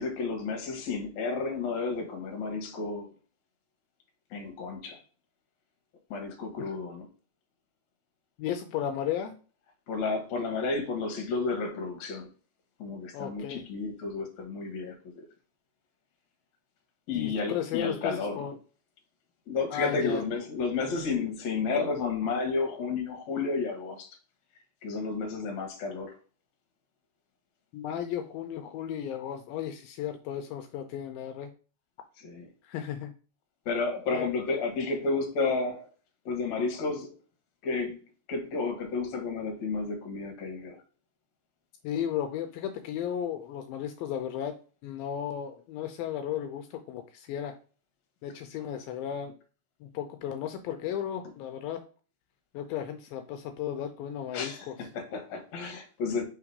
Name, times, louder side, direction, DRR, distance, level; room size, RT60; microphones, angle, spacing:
voice 1, 0.0-3.1 4.3-5.0 6.1-7.1 9.9-12.3 12.8-15.3 17.1-18.5 19.5-24.1 24.8-26.2 32.2-32.5 33.7-35.9 36.3-37.2 37.6-38.0 38.3-40.8 54.3-56.2, left 4 dB, 60° left, 2.2 m, -31 dB
voice 2, 8.4-9.3 13.1-13.6 17.2-18.6 19.7-20.2 27.7-31.5 32.6-33.1 34.1-34.3 41.8-44.5 44.8-47.6 48.2-49.4 49.8-51.8 52.5-54.8, left 9 dB, 85° left, 2.3 m, -34 dB
5.2 x 3.8 x 4.8 m
omnidirectional pair, 4.4 m